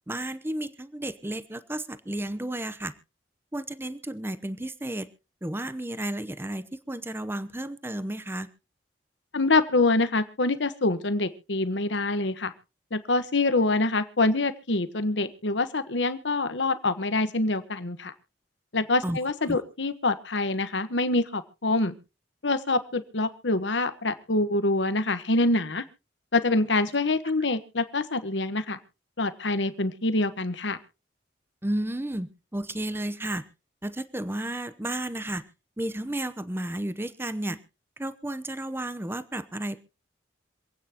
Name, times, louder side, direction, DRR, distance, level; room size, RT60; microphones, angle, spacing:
voice 1, 0.1-2.9 3.5-5.1 5.4-8.5 19.0-19.2 19.4-19.6 31.6-33.4 33.8-35.4 35.8-37.6 38.0-39.8, right 1 dB, 15° right, 13 dB, 0.8 m, -32 dB
voice 2, 9.3-12.5 12.9-18.1 18.7-21.9 22.4-25.8 26.3-28.8 29.2-30.8, left 2 dB, 75° left, 12 dB, 1.2 m, -25 dB
27.0 x 9.1 x 2.9 m, 0.32 s
head